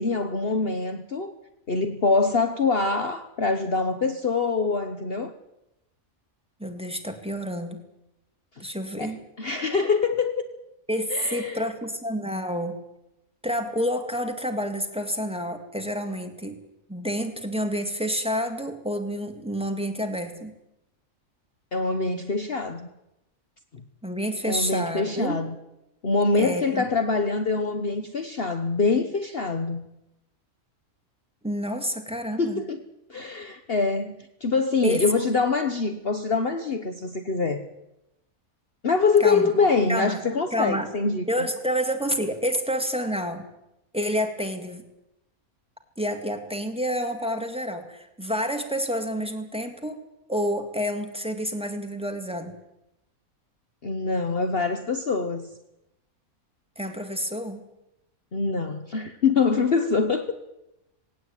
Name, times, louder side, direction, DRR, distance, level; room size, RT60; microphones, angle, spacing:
voice 1, 0.0-1.3 1.7-5.3 8.6-8.7 9.0-9.1 9.4-10.4 11.1-11.7 21.7-22.9 23.7-23.8 24.4-25.5 26.0-29.9 32.4-37.7 38.8-41.5 53.8-55.5 58.3-60.5, left 4 dB, 45° left, 8 dB, 1.3 m, -24 dB
voice 2, 6.6-7.8 8.6-9.2 10.9-12.7 13.4-16.6 16.9-20.5 24.0-25.4 26.3-26.9 31.4-32.6 34.8-35.1 39.2-39.5 39.9-40.2 40.5-40.9 41.3-43.4 43.9-44.8 46.0-50.0 50.3-52.6 56.8-57.6, equal, 5° right, 5 dB, 2.5 m, -29 dB
18.5 x 18.0 x 9.1 m, 0.88 s
omnidirectional pair, 1.5 m